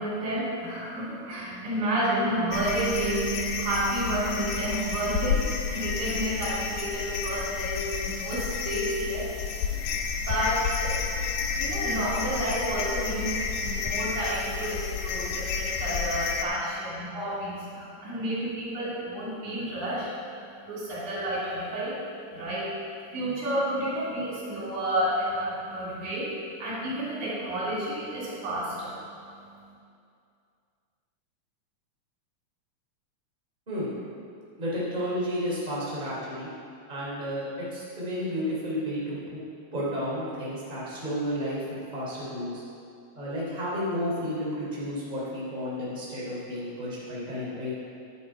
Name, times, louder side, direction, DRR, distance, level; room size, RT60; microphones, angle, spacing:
voice 1, 0.0-9.6 10.3-11.0 11.6-29.7, right 1 dB, 85° right, -7 dB, 4.4 m, -31 dB
sound 1, 2.5-16.4, left 6 dB, 80° left, 2.2 m, -30 dB
voice 2, 34.6-36.5 36.9-39.4 39.7-41.6 41.9-42.6 43.1-47.7, equal, 15° right, -7 dB, 3.1 m, -32 dB
10.0 x 9.7 x 4.9 m, 2.4 s
omnidirectional pair, 3.4 m